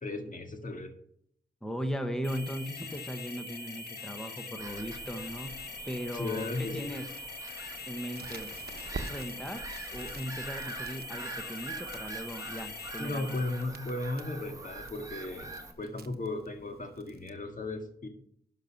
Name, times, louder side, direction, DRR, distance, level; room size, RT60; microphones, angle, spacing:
voice 1, 0.0-0.9 6.1-6.9 13.0-18.1, left 2 dB, 50° left, 5 dB, 1.9 m, -36 dB
voice 2, 1.6-7.1 7.9-8.5 9.0-13.4, equal, 5° left, 7 dB, 1.3 m, -38 dB
sound 1, 2.2-13.7, left 3 dB, 65° left, 1.9 m, -43 dB
Bird vocalization bird call bird song / Gull seagull, 4.6-15.7, right 3 dB, 20° right, 1.7 m, -44 dB
Crackle, 8.1-17.3, right 4 dB, 60° right, 1.0 m, -48 dB
11.5 x 5.5 x 5.9 m, 0.69 s
wide cardioid pair, 75°, 18 cm